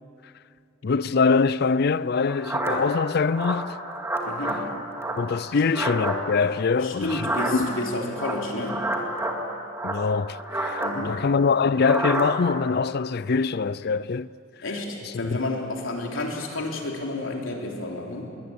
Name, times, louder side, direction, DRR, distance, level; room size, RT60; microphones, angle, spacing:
voice 1, 0.8-3.7 5.2-7.2 7.5-7.7 9.8-14.3 15.3-15.4, left 5 dB, 55° left, 0.4 m, -23 dB
sound 1, 2.2-3.0 3.3-4.6 4.9-6.2 7.0-7.8 8.1-9.4 9.7-11.0 11.7-12.3, right 1 dB, 15° right, 2.2 m, -29 dB
voice 2, 4.2-4.7 5.5-5.6 6.7-8.9 10.8-11.2 14.6-18.3, left 2 dB, 85° left, 3.4 m, -31 dB
22.0 x 18.5 x 8.7 m
head